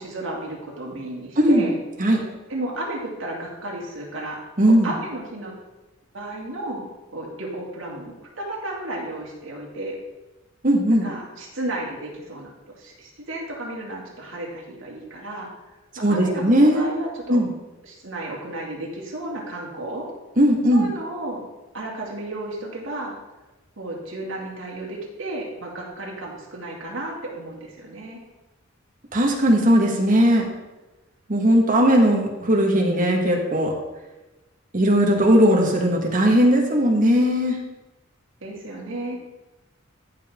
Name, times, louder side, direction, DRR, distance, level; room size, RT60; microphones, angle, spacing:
voice 1, 0.0-1.8 2.5-5.5 6.1-6.8 7.1-10.0 11.0-15.5 16.0-17.4 17.8-20.1 20.7-21.5 21.7-23.2 23.8-28.2 38.4-39.2, right 1 dB, 70° right, -3 dB, 2.5 m, -33 dB
voice 2, 1.4-1.7 2.0-2.2 4.6-4.9 10.6-11.1 16.0-16.9 17.3-17.5 20.4-20.9 29.1-30.4 31.3-33.7 34.7-37.6, equal, 40° right, 1 dB, 1.6 m, -18 dB
14.0 x 5.7 x 3.7 m, 1.1 s
head